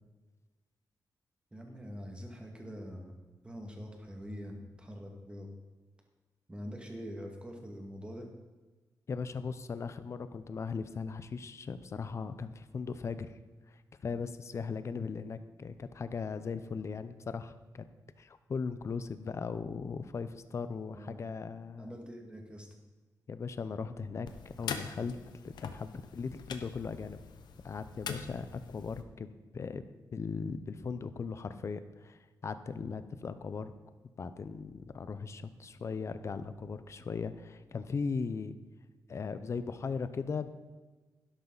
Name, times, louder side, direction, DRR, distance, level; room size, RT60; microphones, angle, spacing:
voice 1, 1.5-3.1 3.4-5.5 6.5-8.3 20.9-21.4 21.8-22.8, equal, 15° right, 2 dB, 2.0 m, -44 dB
voice 2, 9.1-13.3 14.0-17.9 18.2-22.0 23.3-25.2 25.4-27.2 27.6-29.3 29.5-29.8 30.1-33.7 34.2-38.6 39.1-40.5, left 5 dB, 40° left, 12 dB, 0.7 m, -38 dB
sound 1, 24.2-29.0, left 6 dB, 85° left, 1.0 m, -43 dB
12.5 x 11.0 x 4.0 m, 1.3 s
wide cardioid pair, 135°, 7 cm